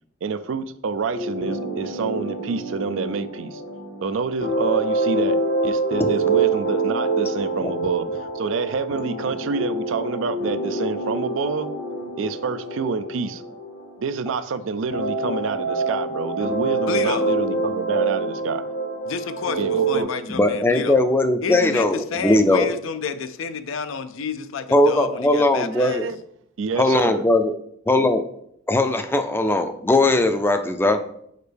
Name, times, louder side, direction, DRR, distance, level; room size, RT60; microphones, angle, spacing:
voice 1, 0.2-3.6 4.0-11.7 12.2-13.4 14.0-18.6 19.6-20.1 25.7-26.2 26.6-27.2, right 5 dB, 65° right, 11 dB, 0.4 m, -27 dB
sound 1, 1.1-14.4 14.9-20.0, right 3 dB, 55° left, 0.9 m, -26 dB
voice 2, 16.9-17.3 19.0-21.0 21.4-26.1, left 5 dB, 75° left, 11 dB, 0.5 m, -30 dB
voice 3, 20.3-22.7 24.7-26.1 26.8-27.5 27.9-28.3 28.7-31.0, left 2 dB, 10° left, 7 dB, 0.4 m, -19 dB
6.5 x 5.1 x 3.4 m, 0.72 s
head